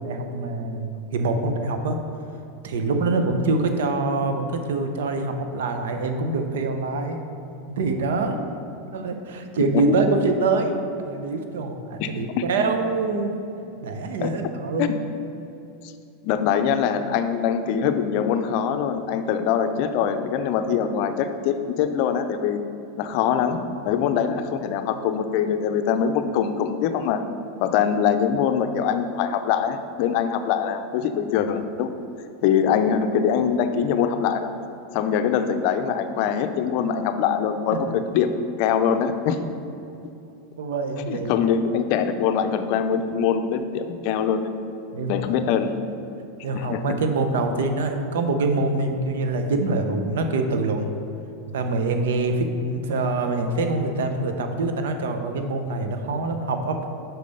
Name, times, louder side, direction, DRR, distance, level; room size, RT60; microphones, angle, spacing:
voice 1, 0.0-2.0 2.6-7.2 7.7-8.4 8.9-13.4 13.8-14.9 40.6-41.3 44.9-45.1 46.4-50.9 51.5-56.9, right 3 dB, 85° right, 6 dB, 0.7 m, -25 dB
voice 2, 9.6-10.0 12.0-12.5 14.2-14.4 14.8-14.9 15.8-15.9 16.2-22.6 23.0-27.2 27.6-31.9 32.4-34.5 34.9-37.9 38.1-38.3 38.6-39.4 41.1-44.5 45.1-45.8 46.5-47.0, left 7 dB, 55° left, 8 dB, 0.5 m, -23 dB
5.8 x 5.2 x 5.4 m, 2.7 s
supercardioid pair, 145°, 0 cm